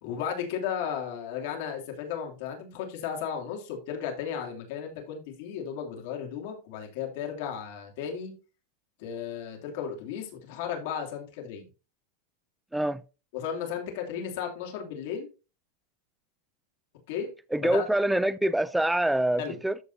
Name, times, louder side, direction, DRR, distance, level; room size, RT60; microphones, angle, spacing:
voice 1, 0.0-8.3 9.0-11.7 13.3-15.3 17.1-17.3 17.6-17.9 19.4-19.6, left 8 dB, 55° left, 2.9 m, -34 dB
voice 2, 17.5-19.8, right 1 dB, 5° right, 0.4 m, -25 dB
14.0 x 5.2 x 2.8 m
supercardioid pair, 160°, 0 cm